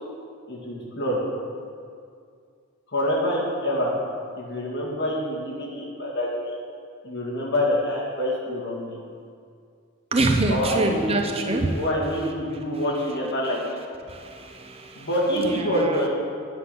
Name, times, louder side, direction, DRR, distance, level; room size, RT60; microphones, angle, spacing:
voice 1, 0.5-1.2 2.9-3.9 4.4-6.5 7.0-9.0 10.5-13.6 15.0-16.1, equal, 50° left, -4 dB, 2.3 m, -26 dB
voice 2, 10.1-11.8 14.1-15.1 15.4-16.0, right 2 dB, 25° right, 3 dB, 0.6 m, -25 dB
10.0 x 5.9 x 6.8 m, 2.3 s
head